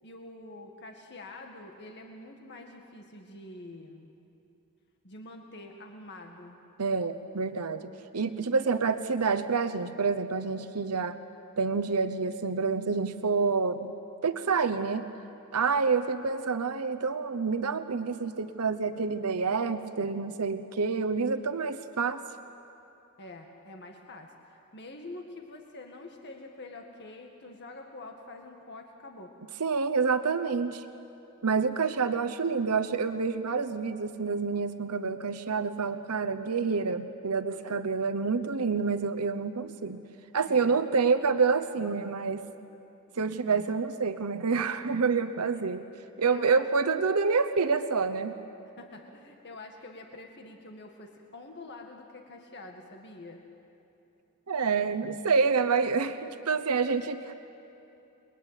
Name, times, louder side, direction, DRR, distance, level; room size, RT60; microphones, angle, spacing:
voice 1, 0.0-4.1 5.0-6.6 23.2-29.3 40.4-40.8 45.5-45.6 46.3-46.7 48.8-53.4, left 2 dB, 50° left, 2 dB, 2.0 m, -46 dB
voice 2, 6.8-11.2 11.6-13.9 14.2-15.1 15.5-22.2 29.6-30.8 31.4-40.0 40.3-42.4 43.2-45.8 46.2-48.3 54.5-57.3, right 5 dB, 85° right, 10 dB, 1.0 m, -28 dB
30.0 x 22.0 x 9.0 m, 2.9 s
head